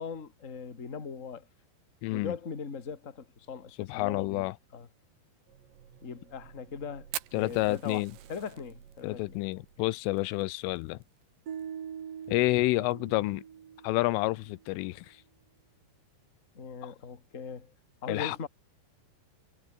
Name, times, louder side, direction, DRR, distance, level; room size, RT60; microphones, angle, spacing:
voice 1, 0.0-1.5 2.1-4.9 6.0-7.1 7.3-8.0 8.3-9.4 9.8-9.9 16.5-17.7 18.0-18.5, left 6 dB, 25° left, 1.8 m, -40 dB
voice 2, 2.0-2.3 3.8-4.6 7.3-8.1 9.0-11.0 12.3-13.4 13.8-15.2 16.8-16.9 18.1-18.4, left 20 dB, 90° left, 3.2 m, -29 dB
sound 1, 5.5-10.5 10.7-10.8, right 8 dB, 85° right, 6.2 m, -57 dB
Fire, 7.1-11.6 11.9-12.0 12.2-12.3 12.7-13.1 13.7-13.8 14.8-15.0, right 14 dB, 65° right, 2.8 m, -43 dB
sound 2, 11.5-14.6, right 8 dB, 50° right, 1.9 m, -43 dB
omnidirectional pair, 5.7 m